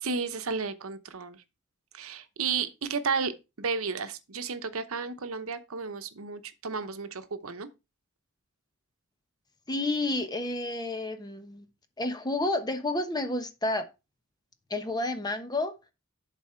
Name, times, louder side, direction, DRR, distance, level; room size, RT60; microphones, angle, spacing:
voice 1, 0.0-1.4 1.9-3.3 3.6-7.7, right 5 dB, 75° right, 0.9 m, -33 dB
voice 2, 9.7-11.6 12.0-13.8 14.7-15.7, left 2 dB, 20° left, 1.1 m, -30 dB
11.0 x 4.1 x 4.4 m
head